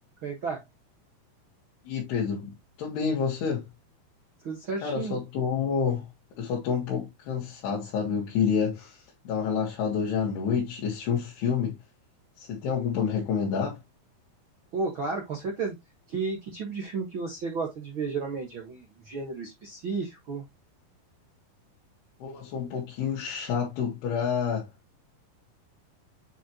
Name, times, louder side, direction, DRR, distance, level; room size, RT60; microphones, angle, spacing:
voice 1, 0.2-0.6 4.4-5.2 14.7-15.7 16.1-20.4, right 4 dB, 50° right, 1.5 m, -33 dB
voice 2, 1.9-2.5 2.8-3.6 4.8-6.1 6.4-9.0 9.3-11.8 12.4-13.8 22.2-24.7, left 6 dB, 90° left, 4.0 m, -28 dB
9.1 x 4.5 x 3.0 m
omnidirectional pair, 4.5 m